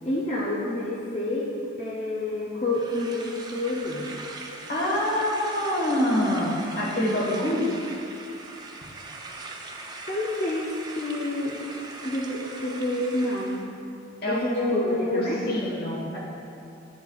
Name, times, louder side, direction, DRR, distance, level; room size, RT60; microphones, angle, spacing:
voice 1, 0.0-4.1 7.2-7.7 10.1-11.6 12.0-13.7 14.3-15.4, left 1 dB, 30° left, -6 dB, 0.6 m, -29 dB
sound 1, 2.7-13.7, right 3 dB, 20° right, 0.4 m, -41 dB
voice 2, 4.7-7.6 14.2-16.2, left 1 dB, 50° left, -4 dB, 1.5 m, -26 dB
9.8 x 7.0 x 2.3 m, 2.6 s
head